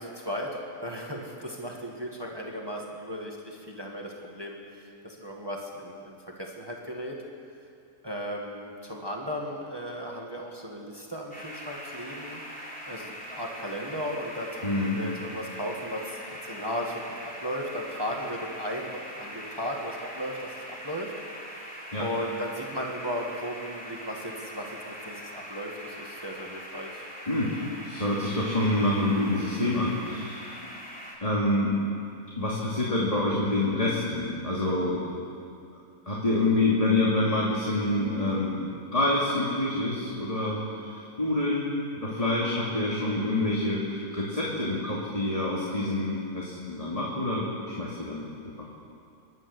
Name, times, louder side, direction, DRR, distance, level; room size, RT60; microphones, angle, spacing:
voice 1, 0.0-7.2 8.0-21.1 22.0-27.1, equal, 15° right, -1 dB, 2.0 m, -36 dB
sound 1, 11.3-31.2, equal, 5° left, 3.5 m, -42 dB
voice 2, 14.6-15.0 21.9-22.1 27.3-30.6 31.2-31.8 32.4-35.0 36.1-38.6 38.9-47.5 47.8-48.3 48.6-48.7, left 2 dB, 25° left, -5 dB, 2.7 m, -27 dB
27.5 x 11.5 x 8.1 m, 2.5 s
omnidirectional pair, 1.5 m